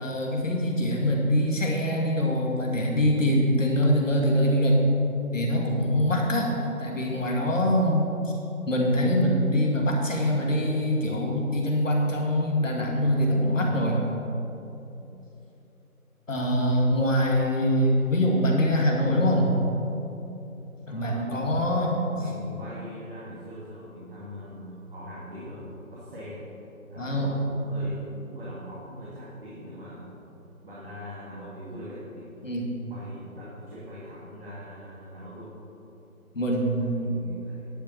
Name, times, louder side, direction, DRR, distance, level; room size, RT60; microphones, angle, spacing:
voice 1, 0.0-4.8 5.3-6.5 6.8-8.3 8.7-14.1 16.3-19.5 20.9-22.0 27.0-27.3 32.4-32.8 36.3-37.0, equal, 60° left, -1 dB, 2.2 m, -24 dB
voice 2, 20.9-21.8 22.1-26.5 26.9-30.1 30.6-32.3 32.9-35.6 36.8-37.7, equal, 40° right, -9 dB, 2.2 m, -42 dB
10.5 x 6.8 x 6.1 m, 3.0 s
figure-of-eight pair, 155°, 44 cm